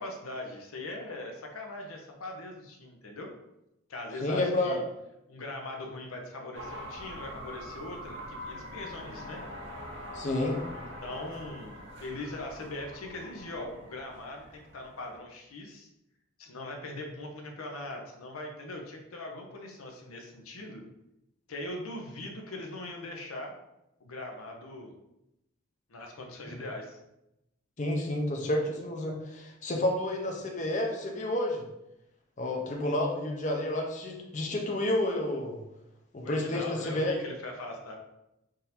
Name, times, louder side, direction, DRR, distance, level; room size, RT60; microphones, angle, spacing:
voice 1, 0.0-3.3 3.9-4.8 5.3-9.4 10.7-15.9 16.4-20.8 21.5-23.5 24.0-24.9 25.9-27.0 36.2-38.0, left 2 dB, 85° left, 3 dB, 0.7 m, -41 dB
voice 2, 4.2-4.8 10.1-10.6 27.8-31.6 32.4-35.6 36.1-37.1, left 1 dB, 35° left, 1 dB, 0.6 m, -30 dB
sound 1, 6.5-15.2, equal, 55° right, 0.8 m, -44 dB
3.8 x 2.6 x 4.2 m, 0.89 s
head